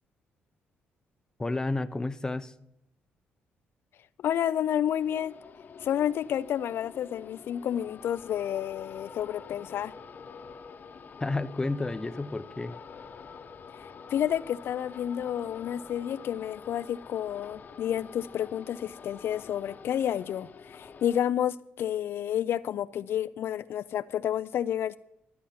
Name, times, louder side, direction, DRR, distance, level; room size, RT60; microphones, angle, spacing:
voice 1, 1.4-2.5 11.2-12.8, left 2 dB, 15° left, 12 dB, 0.6 m, -31 dB
voice 2, 4.2-5.3 5.8-9.9 13.7-25.0, left 10 dB, 70° left, 14 dB, 0.3 m, -30 dB
sound 1, 4.9-21.2, left 5 dB, 45° left, 0.9 m, -47 dB
13.0 x 8.5 x 5.7 m, 0.83 s
cardioid pair, 95°, 4 cm